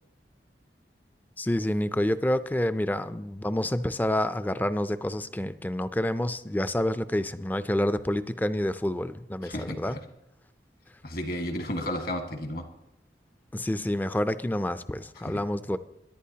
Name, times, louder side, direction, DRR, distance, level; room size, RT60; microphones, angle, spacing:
voice 1, 1.4-10.0 13.5-15.8, left 1 dB, 10° left, 12 dB, 0.4 m, -28 dB
voice 2, 9.4-10.0 11.0-12.7 15.2-15.4, left 1 dB, 60° left, 4 dB, 1.6 m, -33 dB
22.5 x 11.0 x 2.8 m, 0.83 s
head